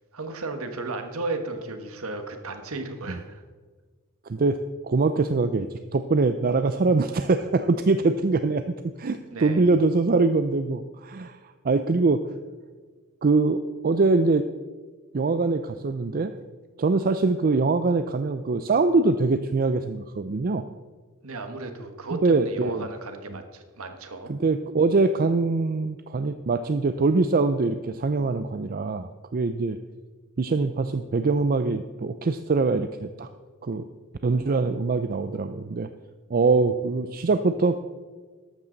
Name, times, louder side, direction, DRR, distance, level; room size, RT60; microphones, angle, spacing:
voice 1, 0.1-3.4 9.3-9.7 21.2-24.3, right 3 dB, 70° right, 7 dB, 1.4 m, -34 dB
voice 2, 4.3-8.6 9.0-11.4 11.6-12.2 13.2-14.4 15.1-16.3 16.8-20.6 22.1-22.8 24.3-29.8 30.4-33.3 33.6-33.8 34.2-35.9 36.3-37.8, right 3 dB, 40° right, 10 dB, 0.4 m, -23 dB
14.0 x 11.5 x 4.0 m, 1.4 s
head